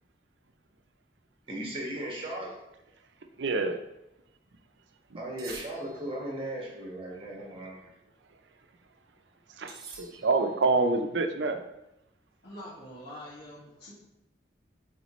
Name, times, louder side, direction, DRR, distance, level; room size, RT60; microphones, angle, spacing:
voice 1, 1.5-2.6 5.1-7.9, right 1 dB, 30° right, -3 dB, 1.5 m, -37 dB
voice 2, 3.4-3.8 5.1-5.2 6.0-6.1 9.6-11.6, right 3 dB, 85° right, 7 dB, 0.6 m, -27 dB
sound 1, 5.4-6.3 9.7-10.6, right 4 dB, 55° right, 1.1 m, -47 dB
voice 3, 12.4-13.9, left 1 dB, 65° left, -10 dB, 1.9 m, -45 dB
8.1 x 3.9 x 3.1 m, 0.89 s
head